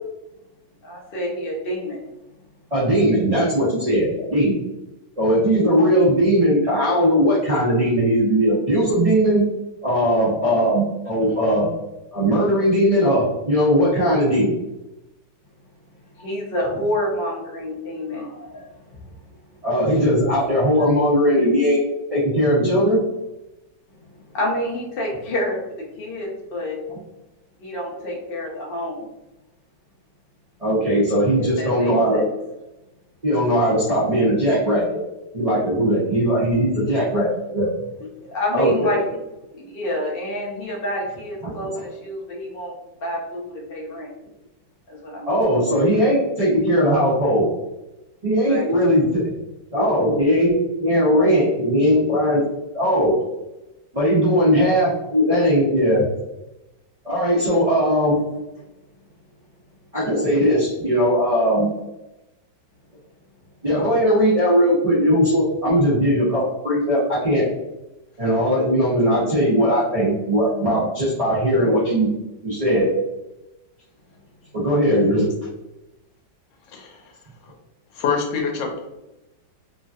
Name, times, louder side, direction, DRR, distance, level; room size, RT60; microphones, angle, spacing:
voice 1, 0.8-2.0 11.2-11.4 16.2-19.0 24.3-26.8 27.6-29.1 31.4-32.3 35.9-36.0 36.7-37.0 38.2-39.2 39.5-42.8 43.0-44.1 44.9-45.4 48.4-48.6 58.3-58.4, left 1 dB, 65° left, -3 dB, 0.5 m, -28 dB
voice 2, 2.7-4.6 5.2-9.4 9.8-11.7 12.1-14.5 19.6-21.8 22.1-23.0 30.6-32.2 33.2-35.0 35.3-37.7 38.5-38.9 41.4-41.5 45.3-47.5 48.2-49.2 49.7-52.4 52.7-53.1 53.9-56.0 57.0-58.2 59.9-61.7 63.6-67.4 68.2-72.1 72.4-72.9 74.5-75.2, equal, 65° right, -9 dB, 0.3 m, -19 dB
voice 3, 78.0-78.9, left 5 dB, 90° left, 2 dB, 1.3 m, -25 dB
3.0 x 2.6 x 2.3 m, 0.97 s
omnidirectional pair, 1.9 m